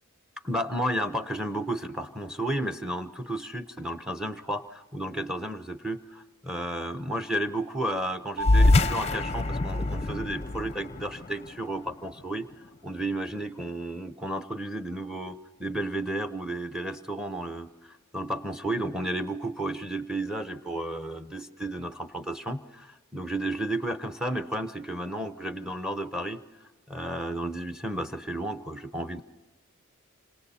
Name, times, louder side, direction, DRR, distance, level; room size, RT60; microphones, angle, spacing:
voice 1, 0.4-12.5 12.8-26.4 26.9-29.2, right 1 dB, 5° right, 10 dB, 0.8 m, -32 dB
sound 1, 8.4-13.3, left 2 dB, 30° left, 0.6 m, -26 dB
Mallet percussion, 8.4-10.9, left 1 dB, 40° right, 0.8 m, -37 dB
27.5 x 26.0 x 4.2 m, 1.2 s
head